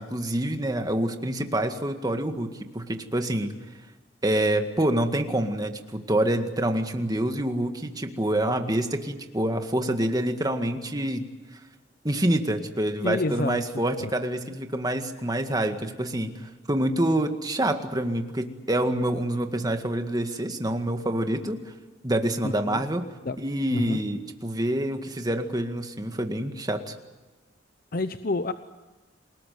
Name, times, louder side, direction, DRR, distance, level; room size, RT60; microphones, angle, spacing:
voice 1, 0.0-3.5 4.2-11.3 12.0-16.3 16.7-21.6 22.0-23.1 23.4-26.9, right 1 dB, 20° right, 6 dB, 1.9 m, -27 dB
voice 2, 13.0-13.6 14.0-14.1 22.4-22.8 23.2-23.4 23.7-24.0 27.9-28.5, left 2 dB, 50° left, 10 dB, 0.8 m, -28 dB
28.0 x 19.0 x 9.5 m, 1.2 s
head